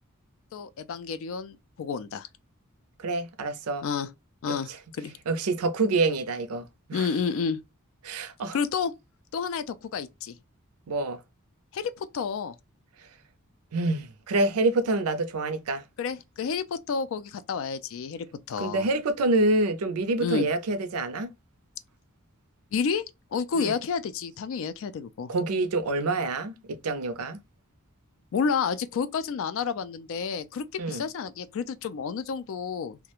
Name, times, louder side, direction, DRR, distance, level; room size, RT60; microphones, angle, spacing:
voice 1, 0.5-2.3 3.8-4.1 4.4-4.7 5.0-5.1 6.9-7.6 8.5-8.9 9.3-10.4 11.7-12.5 16.0-18.9 20.2-20.5 22.7-23.0 23.3-25.3 28.3-33.0, left 6 dB, 60° left, 0.3 m, -30 dB
voice 2, 3.0-3.9 4.5-4.8 5.3-7.1 8.0-8.6 10.9-11.2 13.7-15.8 18.6-21.3 23.5-23.7 25.3-27.4 30.8-31.0, right 2 dB, 80° right, 0.5 m, -27 dB
2.3 x 2.1 x 2.8 m
head